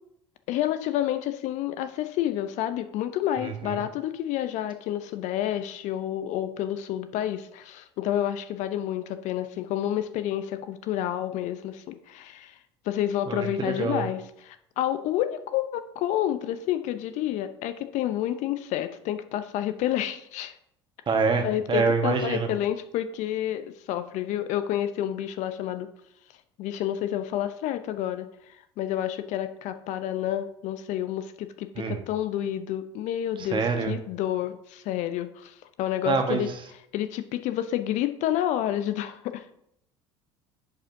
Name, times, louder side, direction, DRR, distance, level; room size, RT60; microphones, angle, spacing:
voice 1, 0.5-12.6 12.9-20.5 21.4-25.9 26.6-36.5 36.9-39.5, left 12 dB, 60° left, 11 dB, 0.6 m, -29 dB
voice 2, 13.3-14.1 21.1-22.5 31.7-32.0 33.5-33.9 36.0-36.4, right 5 dB, 35° right, 4 dB, 1.3 m, -25 dB
10.5 x 5.2 x 2.7 m, 0.75 s
hypercardioid pair, 70°, 14 cm